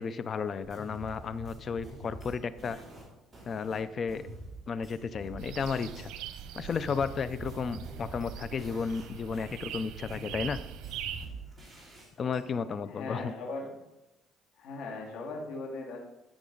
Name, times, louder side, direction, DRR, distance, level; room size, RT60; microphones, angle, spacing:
voice 1, 0.0-2.8 3.4-4.2 4.7-6.1 6.5-10.6 12.2-13.3, left 5 dB, 40° left, 14 dB, 0.4 m, -33 dB
sound 1, 0.6-6.1 6.3-9.1 9.3-12.4, right 2 dB, 15° right, 2.9 m, -46 dB
sound 2, 5.4-11.3, right 9 dB, 90° right, 0.8 m, -42 dB
voice 2, 12.9-13.7 14.6-16.0, left 3 dB, 80° left, 0 dB, 2.0 m, -38 dB
12.5 x 6.0 x 3.9 m, 0.97 s
cardioid pair, 120°, 0 cm